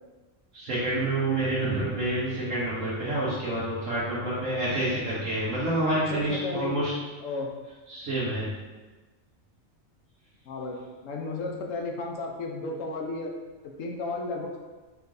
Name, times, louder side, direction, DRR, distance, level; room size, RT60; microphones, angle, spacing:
voice 1, 0.5-6.9 7.9-8.6, right 1 dB, 65° right, -9 dB, 1.2 m, -28 dB
voice 2, 5.8-6.7 7.2-7.5 10.5-13.3 13.8-14.6, left 3 dB, 70° left, 1 dB, 1.0 m, -33 dB
4.5 x 3.1 x 2.5 m, 1.2 s
omnidirectional pair, 1.4 m